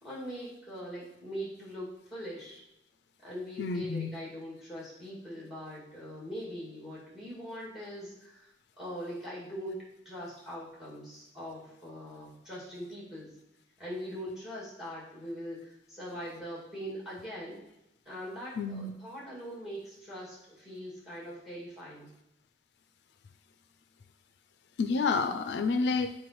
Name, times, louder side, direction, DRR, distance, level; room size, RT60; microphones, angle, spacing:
voice 1, 0.0-2.6 3.2-8.5 8.8-9.8 10.0-13.3 13.8-17.6 18.1-22.1, equal, 5° right, -6 dB, 2.3 m, -41 dB
voice 2, 3.6-4.1 18.6-18.9 24.8-26.1, left 4 dB, 70° left, 8 dB, 0.4 m, -29 dB
7.6 x 4.5 x 3.1 m, 0.90 s
head